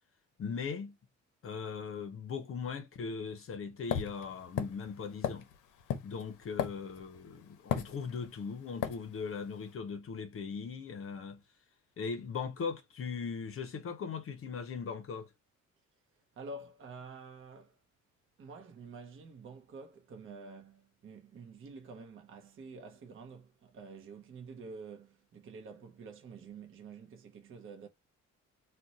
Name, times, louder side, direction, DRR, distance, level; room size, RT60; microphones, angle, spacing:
voice 1, 0.4-0.9 1.4-5.5 6.0-11.4 12.0-15.3, left 5 dB, 45° left, 0.6 m, -39 dB
sound 1, 3.9-7.2 7.7-8.4 8.8-9.0, left 9 dB, 90° left, 0.6 m, -34 dB
voice 2, 16.4-17.7 18.4-27.9, right 4 dB, 45° right, 0.7 m, -48 dB
2.5 x 2.2 x 4.0 m
cardioid pair, 90°, 30 cm